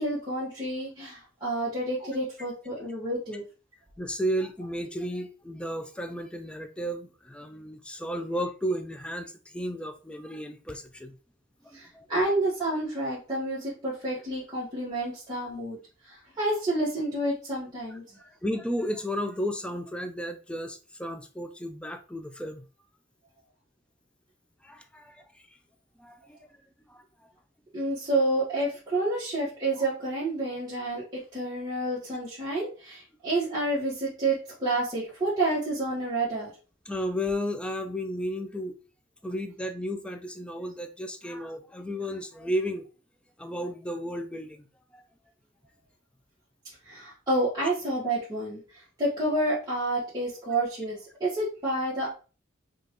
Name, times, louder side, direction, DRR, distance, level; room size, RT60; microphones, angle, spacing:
voice 1, 0.0-3.4 11.7-15.8 16.1-18.0 27.7-31.0 31.3-36.5 46.9-48.6 49.0-52.1, right 2 dB, 20° right, 1.3 m, -29 dB
voice 2, 4.0-11.2 11.6-12.1 18.2-22.7 24.6-25.3 26.0-26.4 26.9-27.0 36.9-38.8 39.2-42.8 43.4-44.7 44.9-45.0, equal, 5° left, 0.3 m, -33 dB
5.1 x 2.4 x 2.9 m
head